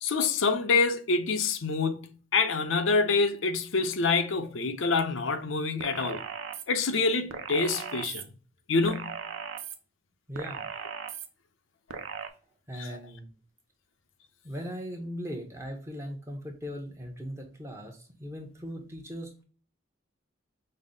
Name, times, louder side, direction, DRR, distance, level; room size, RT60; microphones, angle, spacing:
voice 1, 0.0-6.2 6.7-8.2 8.7-9.2 12.8-12.9, left 4 dB, 80° left, 0.6 m, -26 dB
sound 1, 5.8-6.6 7.3-8.2 8.8-9.8 10.4-11.3 11.9-12.3, right 7 dB, 90° right, 0.5 m, -38 dB
voice 2, 10.3-10.7 12.7-13.3 14.4-19.4, equal, 15° right, 0.7 m, -39 dB
5.4 x 2.0 x 3.7 m
head